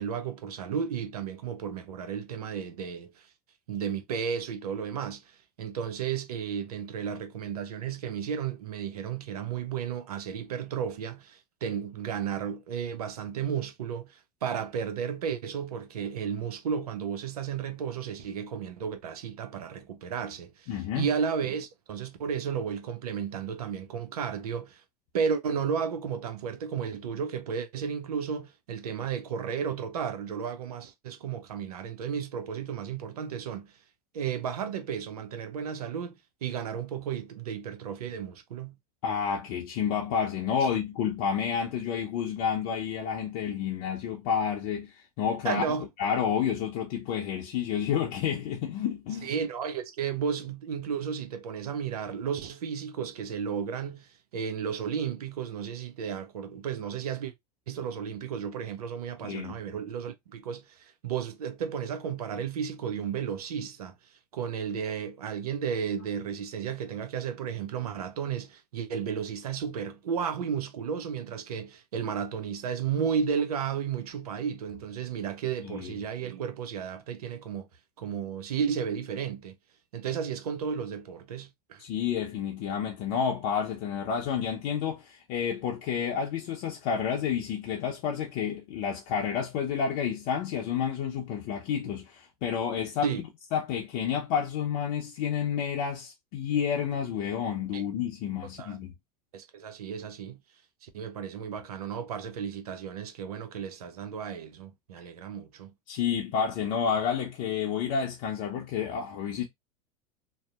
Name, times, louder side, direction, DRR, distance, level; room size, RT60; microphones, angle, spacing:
voice 1, 0.0-3.3 3.7-5.3 5.6-24.8 25.1-33.7 34.1-36.2 36.4-38.8 40.6-40.7 45.4-45.9 49.2-57.3 57.7-63.9 64.3-77.7 78.0-79.5 79.9-81.8 93.0-93.2 97.7-97.9 98.6-98.8 99.3-100.4 100.8-105.7, right 7 dB, 80° right, 0.6 m, -33 dB
voice 2, 20.7-21.1 39.0-45.6 46.0-49.3 59.2-59.5 75.6-76.0 81.8-93.1 93.5-98.9 105.9-109.4, left 7 dB, 55° left, 0.6 m, -30 dB
2.7 x 2.0 x 2.3 m
hypercardioid pair, 90°, 19 cm